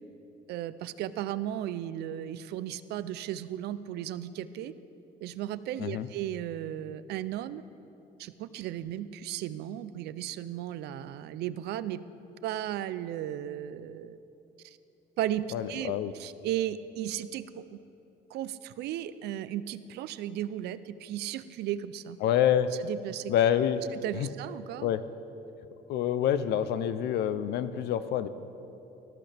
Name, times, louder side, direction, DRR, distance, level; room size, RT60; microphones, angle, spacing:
voice 1, 0.5-4.7 5.2-7.6 8.2-12.0 12.4-14.2 14.6-14.8 15.2-17.8 18.3-22.2 22.8-23.3 24.0-24.9, right 12 dB, 75° right, 15 dB, 0.5 m, -35 dB
voice 2, 15.5-16.1 22.2-22.7 23.3-23.8 24.1-24.3 24.8-25.0 25.9-28.3, left 10 dB, 80° left, 13 dB, 0.6 m, -27 dB
18.5 x 13.5 x 3.4 m, 3.0 s
cardioid pair, 110°, 17 cm